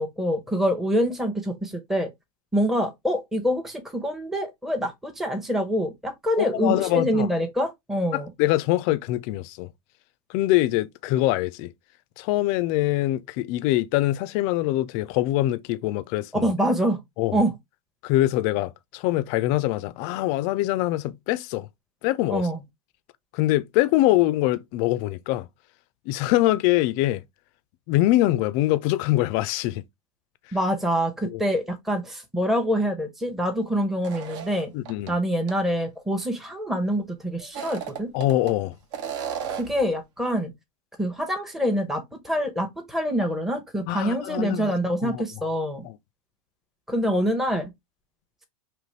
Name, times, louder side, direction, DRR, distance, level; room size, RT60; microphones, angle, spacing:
voice 1, 0.0-2.1 2.5-8.3 16.4-17.0 17.3-17.5 22.3-22.6 30.5-34.7 35.1-38.1 39.6-40.5 41.0-45.8 46.9-47.7, equal, ahead, 0.8 m, -25 dB
voice 2, 6.4-7.3 8.1-9.7 10.3-11.7 12.2-16.5 17.2-17.4 18.0-21.7 22.0-22.5 23.3-25.5 26.1-27.2 27.9-29.8 30.5-30.6 31.2-31.4 34.7-35.1 38.1-38.8 43.9-44.7 45.0-45.2 45.8-46.0, left 16 dB, 40° left, 0.4 m, -24 dB
sound 1, 34.0-35.1 35.5-35.6 37.4-38.5 38.9-39.8, right 8 dB, 55° right, 1.1 m, -34 dB
5.1 x 3.1 x 3.1 m
figure-of-eight pair, 95°, 19 cm